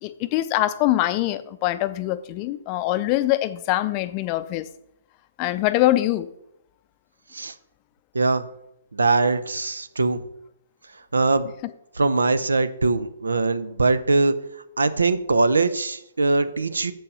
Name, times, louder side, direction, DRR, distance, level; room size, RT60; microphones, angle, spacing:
voice 1, 0.0-4.7 5.4-6.3 11.6-11.7, left 15 dB, 35° left, 0.5 m, -23 dB
voice 2, 8.1-8.5 8.9-10.2 11.1-11.5 12.0-14.3 14.8-16.9, right 3 dB, 85° right, 0.6 m, -21 dB
7.1 x 5.4 x 5.5 m
hypercardioid pair, 130°, 0 cm